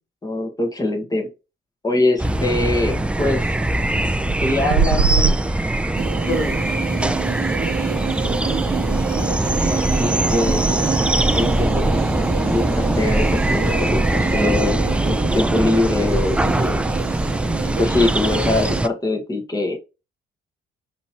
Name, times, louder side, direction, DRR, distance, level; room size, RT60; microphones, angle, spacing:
voice 1, 0.2-1.3 1.8-3.5 4.4-5.8 6.3-6.5 9.7-10.6 11.3-12.1 12.4-16.8 17.8-19.8, left 2 dB, 20° left, 3 dB, 1.4 m, -23 dB
sound 1, 2.2-18.9, right 1 dB, 5° right, 0.3 m, -21 dB
sound 2, 2.2-12.9, right 5 dB, 70° right, 1.1 m, -29 dB
sound 3, 6.0-18.8, right 7 dB, 50° right, 0.7 m, -29 dB
5.2 x 3.0 x 2.8 m, 0.28 s
cardioid pair, 90°, 20 cm